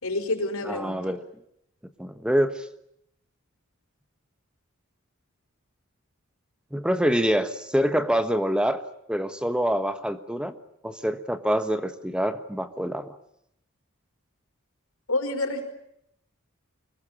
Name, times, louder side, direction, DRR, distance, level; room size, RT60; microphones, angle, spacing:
voice 1, 0.0-1.0 15.1-15.7, left 2 dB, 85° left, 6 dB, 5.1 m, -28 dB
voice 2, 0.6-1.3 2.0-2.7 6.7-8.8 9.1-10.5 10.8-13.2, equal, 5° right, 10 dB, 1.2 m, -25 dB
24.5 x 21.5 x 8.7 m, 0.75 s
head